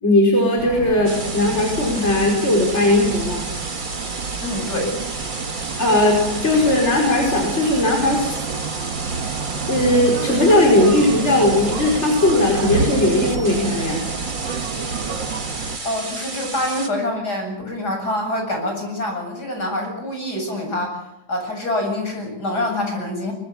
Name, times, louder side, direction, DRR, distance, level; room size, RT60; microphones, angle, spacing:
voice 1, 0.0-3.4 5.8-8.4 9.7-14.0, left 1 dB, 35° left, 0 dB, 5.1 m, -18 dB
sound 1, 0.6-15.8, right 6 dB, 70° right, 2.1 m, -29 dB
sound 2, 1.0-16.9, right 2 dB, 25° right, 2.3 m, -32 dB
voice 2, 4.4-5.0 15.8-21.0 21.3-23.3, left 1 dB, 55° left, 3 dB, 8.6 m, -25 dB
23.5 x 23.0 x 7.2 m, 0.84 s
omnidirectional pair, 2.1 m